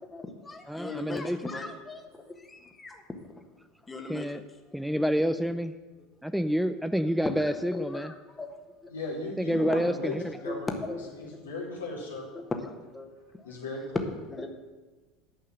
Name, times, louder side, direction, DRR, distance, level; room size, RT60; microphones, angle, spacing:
voice 1, 0.0-3.0 3.3-3.5 3.8-4.3 4.8-4.9 7.7-8.5 8.8-8.9 10.4-10.5 10.8-11.0 12.6-13.1 13.4-13.5 14.3-14.5, left 2 dB, 15° left, 4 dB, 1.4 m, -40 dB
voice 2, 0.7-1.4 4.1-4.4 4.7-5.7 6.2-8.1 9.4-10.2, equal, ahead, 10 dB, 0.5 m, -28 dB
voice 3, 8.9-12.3 13.4-14.1, left 2 dB, 90° left, -2 dB, 2.6 m, -37 dB
9.9 x 5.5 x 7.5 m, 1.3 s
hypercardioid pair, 80°, 0 cm